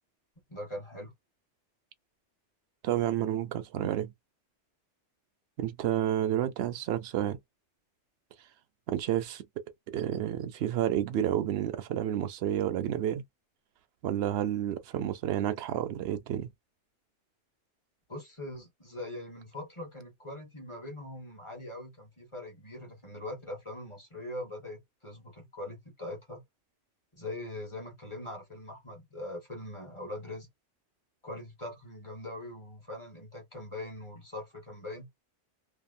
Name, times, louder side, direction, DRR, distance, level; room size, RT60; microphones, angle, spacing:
voice 1, 0.5-1.1 18.1-26.4 27.1-30.5 31.2-35.1, left 1 dB, 25° left, 1.4 m, -42 dB
voice 2, 2.8-4.1 5.6-7.4 8.9-9.5 9.9-13.2 14.0-16.5, right 11 dB, 70° right, 0.8 m, -30 dB
2.7 x 2.4 x 2.5 m
omnidirectional pair, 1.2 m